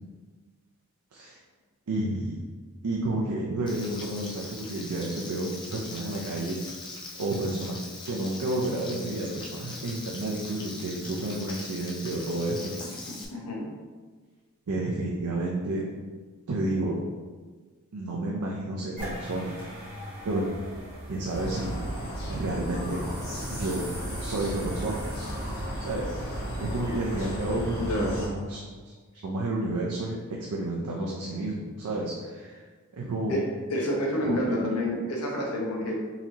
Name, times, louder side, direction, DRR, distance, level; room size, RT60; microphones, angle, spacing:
voice 1, 1.9-2.4 2.8-6.6 7.2-7.8 8.1-12.7 14.7-15.9 16.5-17.0 17.9-19.5 20.2-20.4 21.1-21.8 22.3-23.0 23.5-23.8 24.2-25.0 25.8-28.6 29.2-32.6 32.9-33.4 34.5-34.6, right 2 dB, 85° right, -2 dB, 0.5 m, -31 dB
Frying (food), 3.7-13.2, left 2 dB, 20° left, 0.4 m, -41 dB
voice 2, 12.8-13.7 27.8-28.2 33.3-36.0, left 1 dB, 85° left, -2 dB, 0.8 m, -29 dB
sound 1, 19.0-27.2, right 1 dB, 40° right, 1.3 m, -43 dB
sound 2, 21.3-28.3, equal, 45° left, 1.2 m, -34 dB
4.1 x 2.9 x 2.7 m, 1.4 s
head